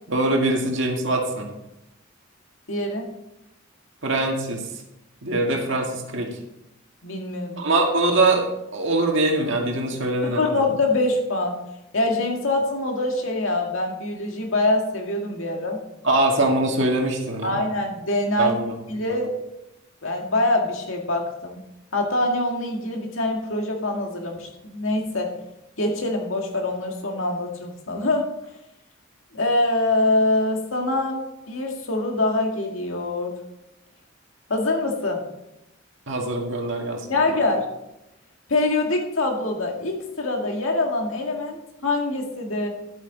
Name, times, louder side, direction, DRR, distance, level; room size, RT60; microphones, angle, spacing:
voice 1, 0.1-1.5 4.0-4.7 5.2-6.4 7.6-8.4 8.7-10.7 16.0-17.6 18.4-18.8 19.1-19.2 36.1-37.1, right 2 dB, 65° right, 1 dB, 2.1 m, -23 dB
voice 2, 2.7-3.1 7.0-7.7 10.2-11.6 11.9-15.8 17.4-18.6 18.9-19.3 20.0-21.7 21.9-25.3 25.8-28.3 29.3-31.2 31.5-33.4 34.5-35.2 37.1-37.7 38.5-42.7, left 2 dB, 75° left, 2 dB, 2.0 m, -24 dB
11.0 x 8.5 x 4.1 m, 0.89 s
head